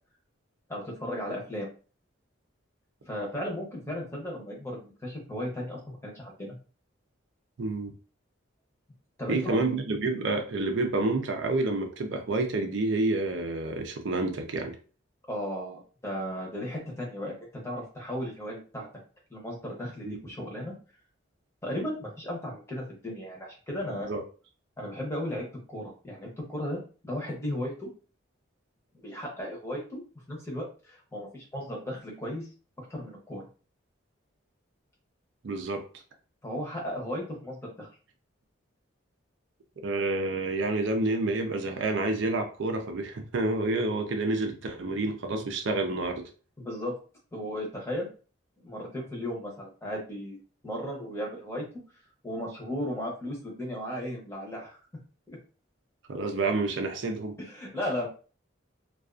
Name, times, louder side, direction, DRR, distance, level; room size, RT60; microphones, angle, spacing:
voice 1, 0.7-1.7 3.0-6.6 9.2-9.6 15.3-17.4 17.6-18.9 19.3-20.7 21.6-24.1 24.8-27.9 29.0-30.0 30.3-32.5 32.9-33.4 36.4-37.9 46.6-46.9 47.3-48.1 48.6-50.4 50.6-51.6 52.2-54.8 55.3-55.4 57.5-58.1, equal, 15° left, -2 dB, 0.7 m, -35 dB
voice 2, 7.6-7.9 9.3-14.8 20.0-20.2 24.1-24.2 35.4-35.8 39.8-46.2 56.1-57.4, right 2 dB, 65° right, 5 dB, 0.5 m, -29 dB
2.4 x 2.3 x 2.4 m, 0.37 s
head